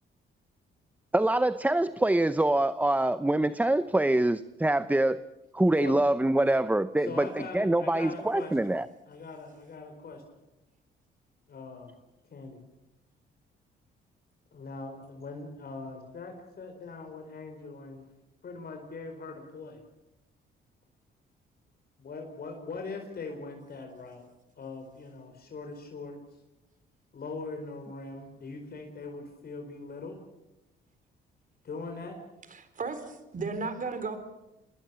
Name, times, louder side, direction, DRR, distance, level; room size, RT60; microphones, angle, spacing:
voice 1, 1.1-5.2 5.5-8.9, right 1 dB, 10° right, 13 dB, 0.8 m, -25 dB
voice 2, 7.1-8.6 9.1-10.2 11.5-11.9 12.3-12.6 14.5-18.0 18.4-19.8 22.0-24.2 24.6-26.2 27.1-30.2 31.6-32.2, left 3 dB, 50° left, 3 dB, 4.7 m, -41 dB
voice 3, 32.5-34.2, right 4 dB, 40° right, 11 dB, 3.9 m, -34 dB
27.0 x 21.5 x 7.0 m, 0.95 s
cardioid pair, 90°, 20 cm